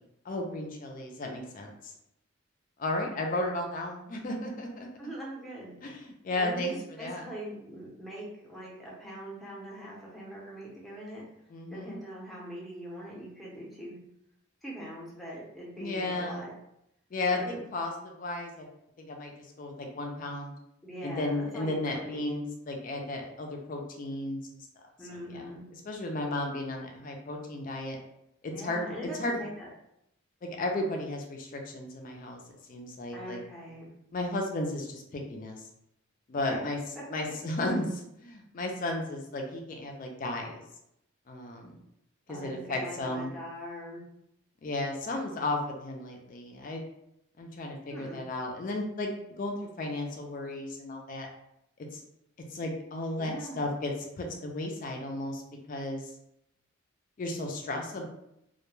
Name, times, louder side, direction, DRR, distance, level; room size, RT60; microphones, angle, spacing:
voice 1, 0.2-1.9 2.8-4.9 5.8-7.2 11.5-12.0 15.8-16.5 17.1-18.7 19.0-20.5 21.0-24.4 25.3-25.5 25.7-28.0 28.4-29.4 30.4-32.4 32.7-33.4 34.1-35.6 36.3-36.8 37.1-40.6 41.3-41.8 42.3-43.3 44.6-46.8 47.4-49.1 49.4-51.3 51.8-52.0 52.5-55.4 55.7-56.1 57.2-58.1, left 2 dB, 40° left, 2 dB, 0.3 m, -34 dB
voice 2, 5.0-5.7 6.4-11.2 11.7-14.0 14.6-16.5 17.3-17.6 20.8-22.3 25.0-25.6 28.5-29.7 33.1-33.9 36.5-36.6 42.3-44.0 47.9-48.2 53.2-53.6, equal, ahead, -6 dB, 0.6 m, -42 dB
2.2 x 2.1 x 3.0 m, 0.80 s
head